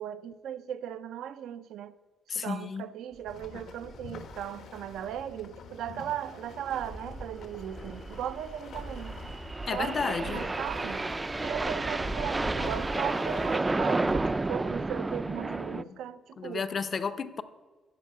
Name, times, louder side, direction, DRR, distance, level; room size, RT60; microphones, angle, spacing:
voice 1, 0.0-1.9 2.3-9.2 9.7-11.0 11.4-16.7, right 10 dB, 80° right, 0.5 m, -37 dB
voice 2, 2.3-2.9 9.7-10.4 15.6-16.0 16.4-17.4, left 5 dB, 45° left, 0.6 m, -33 dB
sound 1, 3.3-13.6, left 5 dB, 75° left, 1.2 m, -46 dB
sound 2, 3.4-3.6 3.9-4.0 4.3-4.4 4.9-5.2 6.5-15.8, right 2 dB, 20° right, 0.4 m, -32 dB
13.5 x 4.6 x 8.4 m
cardioid pair, 90°, 0 cm